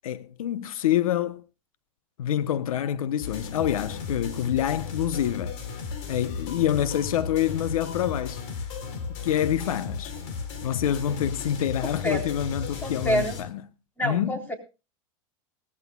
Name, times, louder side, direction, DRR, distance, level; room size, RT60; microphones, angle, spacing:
voice 1, 0.0-1.4 2.2-5.6 6.1-8.4 9.2-10.1 10.6-13.6 14.0-14.4, left 10 dB, 85° left, 1.0 m, -26 dB
sound 1, 3.2-13.4, left 5 dB, 55° left, 3.6 m, -35 dB
voice 2, 12.8-13.3 14.0-14.5, equal, 10° left, 3.8 m, -27 dB
20.0 x 14.5 x 2.4 m
supercardioid pair, 145°, 18 cm